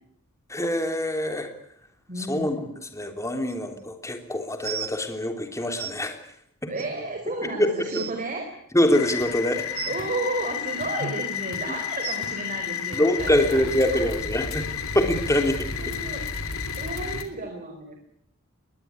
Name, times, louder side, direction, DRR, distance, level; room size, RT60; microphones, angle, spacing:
voice 1, 0.5-1.5 2.2-2.6 2.9-6.2 6.6-6.7 7.6-7.7 8.7-9.7 12.9-16.0, left 1 dB, 15° left, 5 dB, 3.4 m, -24 dB
voice 2, 2.1-2.7 6.7-8.5 9.9-13.6 13.9-14.0 15.8-16.3 16.8-18.0, right 2 dB, 35° right, 4 dB, 4.5 m, -33 dB
sound 1, 4.6-4.9 5.8-5.9 6.8-6.9 7.4-7.5 7.8-8.1 9.7-10.0 11.0-11.2 12.0-12.2 13.3-13.4 14.2-14.3 14.9-15.0, right 8 dB, 70° right, 1.6 m, -34 dB
sound 2, 8.9-17.2, left 6 dB, 70° left, 3.2 m, -31 dB
22.0 x 20.0 x 9.7 m, 0.73 s
head